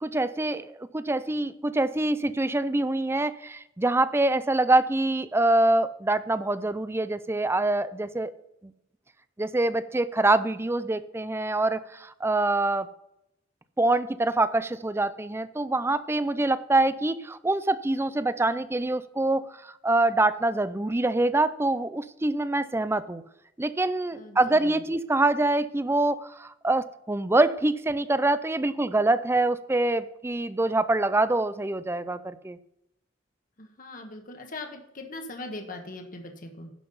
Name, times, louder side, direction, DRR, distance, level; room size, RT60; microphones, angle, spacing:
voice 1, 0.0-8.3 8.6-8.7 9.4-12.9 13.8-23.2 23.6-32.6, right 2 dB, 15° right, 14 dB, 0.4 m, -25 dB
voice 2, 24.1-24.8 33.6-36.7, left 2 dB, 45° left, 4 dB, 1.3 m, -40 dB
11.0 x 5.8 x 5.5 m, 0.82 s
head